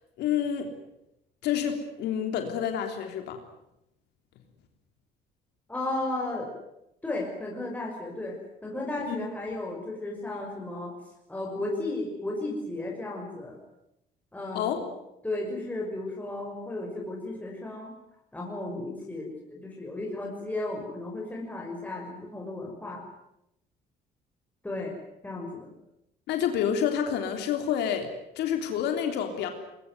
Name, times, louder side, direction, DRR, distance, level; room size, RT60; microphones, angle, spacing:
voice 1, 0.2-0.7 1.4-3.4 9.1-9.2 9.5-9.6 14.5-14.8 26.3-28.1 28.4-29.5, left 8 dB, 80° left, 5 dB, 3.5 m, -28 dB
voice 2, 5.7-6.5 7.0-10.9 11.3-13.6 14.3-14.9 15.2-17.9 18.3-23.0 24.6-25.0 25.2-25.7, left 2 dB, 10° left, -2 dB, 6.0 m, -34 dB
21.5 x 21.5 x 9.4 m, 0.84 s
cardioid pair, 110°, 17 cm